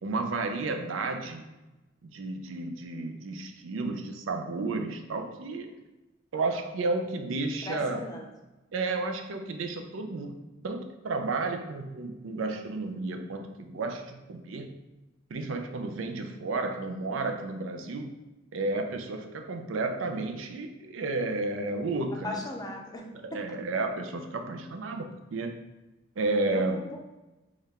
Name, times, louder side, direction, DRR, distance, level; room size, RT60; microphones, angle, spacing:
voice 1, 0.0-1.5 2.0-5.7 6.3-8.0 8.7-10.4 10.6-14.7 15.3-18.2 18.5-22.4 23.2-25.5 26.2-26.8, right 3 dB, 85° right, 5 dB, 0.5 m, -32 dB
voice 2, 7.6-8.3 22.2-23.1 23.3-23.4 26.5-27.0, left 1 dB, 20° left, 1 dB, 0.5 m, -37 dB
3.6 x 2.4 x 4.2 m, 1.0 s
head